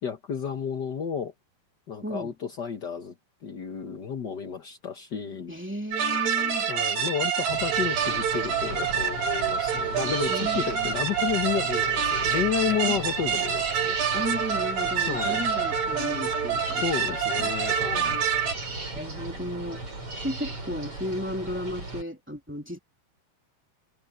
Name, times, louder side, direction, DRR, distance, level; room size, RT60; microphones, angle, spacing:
voice 1, 0.0-1.3 1.9-3.1 3.4-5.5 6.7-14.0 15.1-15.4 16.8-18.2, left 7 dB, 85° left, 0.9 m, -31 dB
voice 2, 2.0-2.3 5.5-6.7 10.3-11.0 12.8-13.0 14.1-17.5 18.9-19.8 20.2-22.8, equal, 5° right, 2.5 m, -34 dB
sound 1, 5.9-18.6, right 7 dB, 70° right, 4.3 m, -27 dB
sound 2, 7.5-22.0, right 2 dB, 40° right, 8.4 m, -37 dB
omnidirectional pair, 4.1 m